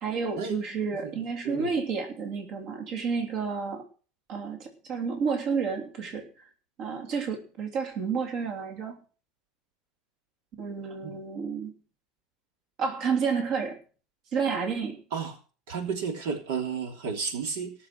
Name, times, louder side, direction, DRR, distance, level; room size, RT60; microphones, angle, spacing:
voice 1, 0.0-3.9 4.3-6.3 6.8-9.0 10.6-11.7 12.8-13.8 14.3-15.0, right 5 dB, 50° right, 3 dB, 3.1 m, -30 dB
voice 2, 15.7-17.7, right 6 dB, 80° right, 5 dB, 3.1 m, -32 dB
18.0 x 6.9 x 6.1 m, 0.38 s
supercardioid pair, 135°, 0 cm